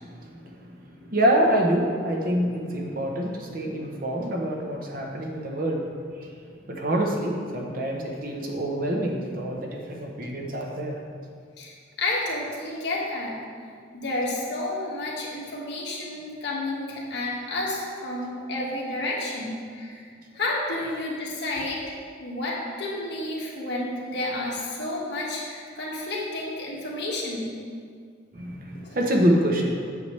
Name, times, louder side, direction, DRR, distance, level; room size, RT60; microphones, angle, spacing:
voice 1, 0.0-5.9 6.2-6.3 6.7-11.0 28.3-29.9, right 1 dB, 45° right, 1 dB, 0.9 m, -26 dB
voice 2, 12.0-13.3 13.9-20.0 20.3-27.5, left 2 dB, 60° left, -5 dB, 1.7 m, -30 dB
8.2 x 6.9 x 3.2 m, 2.1 s
head